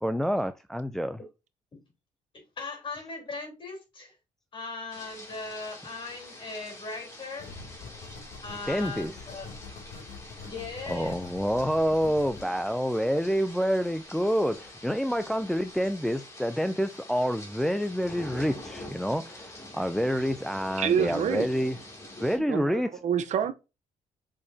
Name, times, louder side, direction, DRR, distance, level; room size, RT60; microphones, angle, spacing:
voice 1, 0.0-1.2 8.7-9.1 10.9-21.8 22.2-23.0, equal, 5° left, 0.4 m, -28 dB
voice 2, 2.3-4.2 4.5-7.5 8.4-9.5 10.4-11.2, left 3 dB, 40° left, 3.7 m, -39 dB
sound 1, 4.9-22.4, left 1 dB, 20° left, 2.5 m, -46 dB
sound 2, 7.4-15.9, left 4 dB, 90° left, 2.5 m, -46 dB
voice 3, 20.8-21.5 22.5-23.5, right 8 dB, 60° right, 0.8 m, -27 dB
7.0 x 4.9 x 2.7 m
cardioid pair, 125°, 13 cm